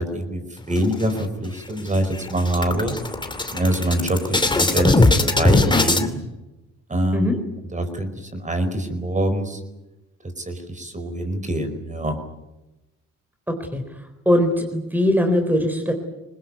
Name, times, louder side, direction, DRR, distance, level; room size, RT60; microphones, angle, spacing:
voice 1, 0.0-3.0 3.5-5.0 5.3-6.2 6.9-7.4 7.7-9.6 10.4-12.2, right 1 dB, 25° right, 8 dB, 4.7 m, -24 dB
sound 1, 0.7-1.5 1.9-2.0 2.3-6.1, left 2 dB, 15° left, 2.6 m, -20 dB
voice 2, 14.3-15.9, left 1 dB, 5° right, 5 dB, 4.0 m, -20 dB
22.0 x 20.0 x 9.6 m, 1.0 s
cardioid pair, 80°, 31 cm